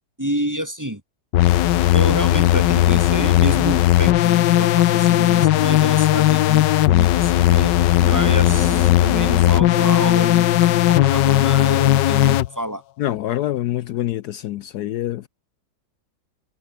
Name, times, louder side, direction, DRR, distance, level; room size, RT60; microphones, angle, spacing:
voice 1, 0.2-1.0 1.9-7.7 8.1-12.8, equal, 10° right, 1.9 m, -28 dB
sound 1, 1.3-12.5, left 14 dB, 85° left, 1.4 m, -16 dB
sound 2, 8.0-11.3, left 2 dB, 45° left, 6.5 m, -34 dB
voice 2, 13.0-15.3, left 13 dB, 70° left, 1.1 m, -25 dB
omnidirectional pair, 1.9 m